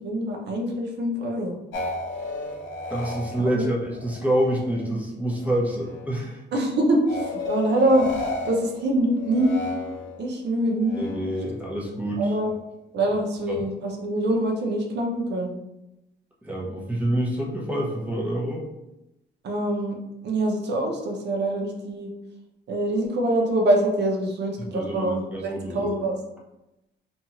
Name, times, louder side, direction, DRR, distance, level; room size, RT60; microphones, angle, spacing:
voice 1, 0.0-1.6 3.5-3.6 6.5-8.1 8.5-9.5 10.2-11.0 12.2-12.5 12.9-15.5 19.4-20.0 20.2-22.1 22.7-26.1, right 1 dB, 60° right, 1 dB, 0.7 m, -24 dB
sound 1, 1.7-4.9 5.3-6.1 7.1-10.3 10.8-11.6, left 3 dB, 70° left, 0.7 m, -34 dB
voice 2, 2.9-6.4 11.0-12.3 13.5-13.6 16.4-18.7 24.7-25.9, right 1 dB, 5° right, -3 dB, 0.8 m, -27 dB
2.6 x 2.3 x 2.9 m, 0.92 s
cardioid pair, 90°, 20 cm